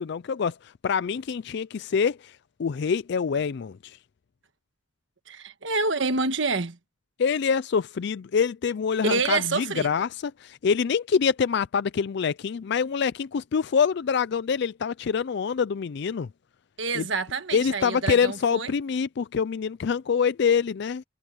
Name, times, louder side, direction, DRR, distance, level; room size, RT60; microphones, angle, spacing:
voice 1, 0.0-4.0 7.2-16.3 16.9-17.1 17.5-21.0, left 6 dB, 60° left, 0.4 m, -25 dB
voice 2, 5.3-6.8 9.0-9.9 16.8-18.7, right 3 dB, 70° right, 1.4 m, -27 dB
head